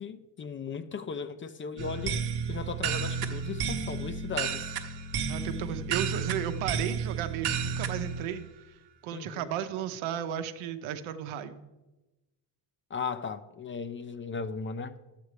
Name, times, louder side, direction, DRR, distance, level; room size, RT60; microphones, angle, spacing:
voice 1, 0.0-4.7 9.1-9.5 12.9-15.0, left 5 dB, 25° left, 0.4 m, -37 dB
sound 1, 1.8-8.2, right 6 dB, 55° right, 1.0 m, -32 dB
voice 2, 5.3-8.4 9.0-11.6, right 9 dB, 80° right, 0.9 m, -34 dB
12.5 x 8.3 x 3.2 m
cardioid pair, 100°, 47 cm